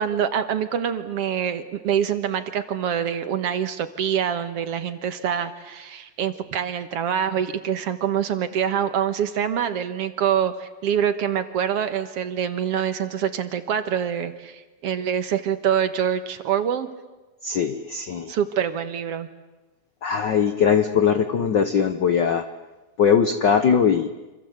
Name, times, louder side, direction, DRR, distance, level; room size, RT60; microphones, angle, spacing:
voice 1, 0.0-16.9 18.3-19.3, right 8 dB, 60° right, 10 dB, 2.0 m, -25 dB
voice 2, 17.4-18.3 20.0-22.5 23.0-24.1, left 7 dB, 90° left, 9 dB, 0.9 m, -20 dB
27.0 x 26.5 x 8.0 m, 1.1 s
omnidirectional pair, 3.5 m